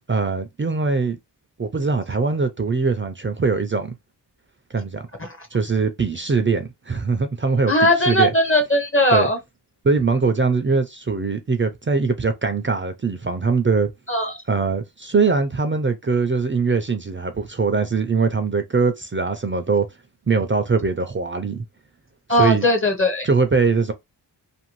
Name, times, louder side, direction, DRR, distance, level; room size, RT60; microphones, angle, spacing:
voice 1, 0.1-1.2 1.6-4.0 4.7-5.0 5.5-8.3 9.1-9.3 9.8-13.9 14.5-19.9 20.3-21.6 22.3-22.7 23.2-23.9, right 4 dB, 30° right, 0.4 m, -22 dB
voice 2, 7.7-9.4 14.1-14.3 22.3-23.3, left 1 dB, 30° left, 0.7 m, -19 dB
2.6 x 2.6 x 3.0 m
wide cardioid pair, 95°, 42 cm